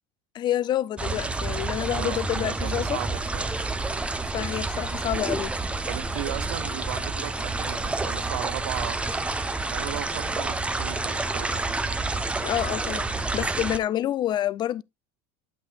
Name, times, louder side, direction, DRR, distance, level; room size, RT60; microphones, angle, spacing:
voice 1, 0.3-3.0 4.3-5.5 12.4-14.8, left 12 dB, 35° left, 0.4 m, -28 dB
sound 1, 1.0-13.8, right 3 dB, 10° right, 0.6 m, -29 dB
voice 2, 1.9-3.5 5.9-9.0 9.7-11.7, right 17 dB, 85° right, 0.6 m, -36 dB
8.8 x 7.8 x 2.2 m
supercardioid pair, 130°, 14 cm